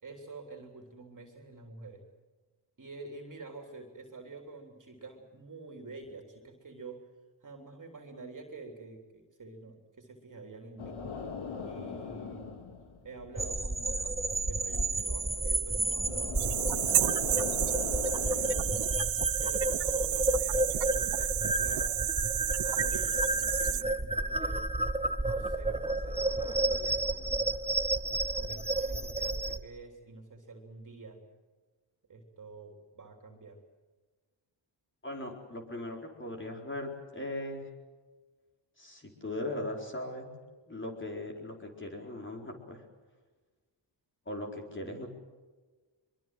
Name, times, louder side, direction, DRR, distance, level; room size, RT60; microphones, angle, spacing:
voice 1, 0.0-2.0 2.8-7.0 7.4-11.0 11.6-12.5 13.0-18.6 19.3-22.1 22.6-24.6 25.2-27.6 28.3-31.2 32.1-33.6, right 3 dB, 40° right, 3 dB, 3.5 m, -48 dB
sound 1, 10.8-19.0, left 5 dB, 75° left, 2.7 m, -41 dB
sound 2, 13.4-29.6, right 2 dB, 15° right, 1.2 m, -31 dB
sound 3, 16.3-23.8, right 13 dB, 55° right, 0.6 m, -31 dB
voice 2, 35.0-37.7 38.8-40.4 40.7-42.8 44.3-45.1, left 1 dB, 25° left, 1 dB, 4.5 m, -39 dB
23.0 x 22.5 x 7.7 m, 1.3 s
cardioid pair, 70°, 48 cm